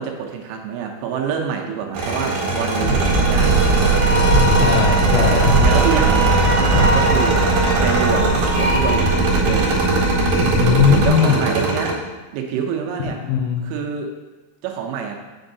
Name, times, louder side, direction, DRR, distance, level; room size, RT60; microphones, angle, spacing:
voice 1, 0.0-3.9 5.6-7.4 7.8-9.7 10.9-12.1 12.3-13.2 13.6-14.1 14.6-15.1, right 7 dB, 80° right, 1 dB, 3.0 m, -26 dB
sound 1, 1.9-11.9, right 2 dB, 60° right, 2.6 m, -21 dB
sound 2, 2.8-11.1, right 2 dB, 60° left, 2.2 m, -19 dB
Wind instrument woodwind instrument, 4.0-9.1, equal, 45° right, 1.4 m, -25 dB
voice 2, 4.6-5.5 10.4-11.4 13.2-13.6, left 7 dB, 80° left, 1 dB, 2.8 m, -18 dB
7.7 x 6.1 x 2.7 m, 1.2 s
omnidirectional pair, 5.7 m